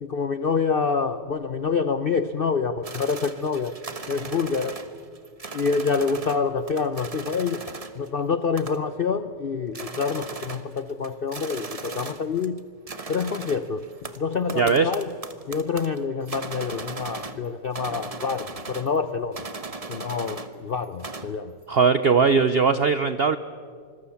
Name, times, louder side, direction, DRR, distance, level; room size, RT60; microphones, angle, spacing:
voice 1, 0.0-3.8 4.1-4.8 5.5-7.6 8.0-12.6 13.1-13.9 14.2-15.1 15.5-19.5 19.9-21.5, left 5 dB, 65° left, 11 dB, 0.5 m, -27 dB
sound 1, 2.8-6.4 6.7-8.1 8.6-9.0 9.4-9.5 9.7-12.6 12.9-17.5 17.7-19.0 19.3-20.5 20.8-21.4, right 3 dB, 25° right, 0.9 m, -38 dB
voice 2, 14.6-14.9 21.7-23.4, right 5 dB, 70° right, 12 dB, 0.5 m, -19 dB
26.0 x 21.5 x 7.1 m, 2.2 s
omnidirectional pair, 1.9 m